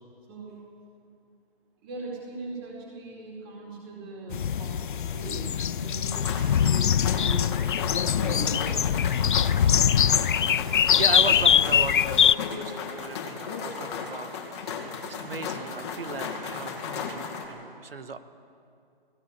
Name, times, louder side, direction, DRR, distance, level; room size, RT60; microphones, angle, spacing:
voice 1, 0.3-0.6 1.8-7.5 7.9-10.5, right 2 dB, 25° right, -3 dB, 4.6 m, -40 dB
sound 1, 4.3-12.3, left 9 dB, 55° left, 0.4 m, -23 dB
sound 2, 6.0-17.5, left 5 dB, 30° left, 2.4 m, -35 dB
voice 2, 10.9-18.2, right 5 dB, 70° right, 9 dB, 1.6 m, -37 dB
19.0 x 17.5 x 8.3 m, 2.5 s
hypercardioid pair, 160°, 30 cm